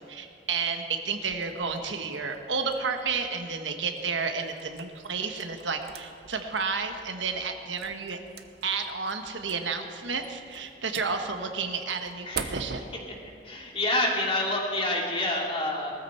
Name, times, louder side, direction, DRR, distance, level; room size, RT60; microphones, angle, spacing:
voice 1, 0.1-8.2 8.6-12.9, right 5 dB, 85° right, 5 dB, 1.3 m, -31 dB
sound 1, 1.2-12.8, right 5 dB, 60° right, 0.9 m, -44 dB
voice 2, 13.4-15.9, left 1 dB, 30° left, -1 dB, 2.8 m, -27 dB
19.5 x 13.5 x 4.3 m, 2.6 s
head